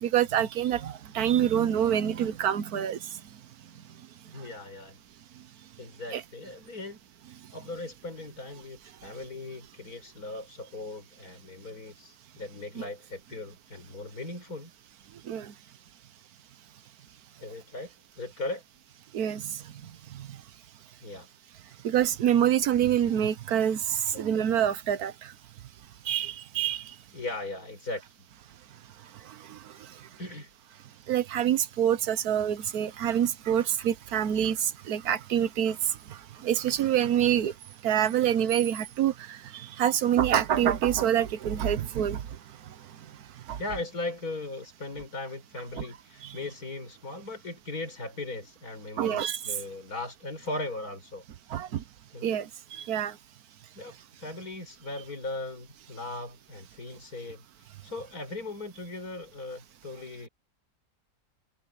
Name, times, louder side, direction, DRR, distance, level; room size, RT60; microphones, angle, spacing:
voice 1, 0.0-3.0 6.1-6.2 12.7-12.9 15.3-15.5 19.1-19.4 21.8-25.1 26.1-26.8 29.5-29.6 31.1-35.8 36.4-37.5 37.8-42.2 43.5-43.6 45.8-45.9 46.2-46.3 49.0-49.4 51.5-51.8 52.2-53.1, right 10 dB, 85° right, 1.5 m, -26 dB
voice 2, 4.3-5.0 5.8-7.0 7.5-14.7 17.4-18.6 21.0-21.3 24.1-24.2 27.1-28.0 30.2-30.5 43.6-51.2 52.1-52.3 53.7-60.3, left 2 dB, 85° left, 6.2 m, -38 dB
omnidirectional pair, 1.5 m